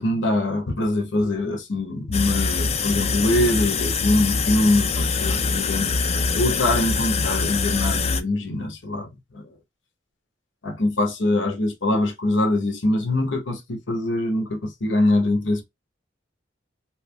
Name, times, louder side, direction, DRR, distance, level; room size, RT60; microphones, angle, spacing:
voice 1, 0.0-9.1 9.3-9.4 10.6-15.6, left 2 dB, 90° left, 0.9 m, -23 dB
sound 1, 2.1-8.2, left 4 dB, 35° left, 0.4 m, -24 dB
3.2 x 2.9 x 2.2 m
head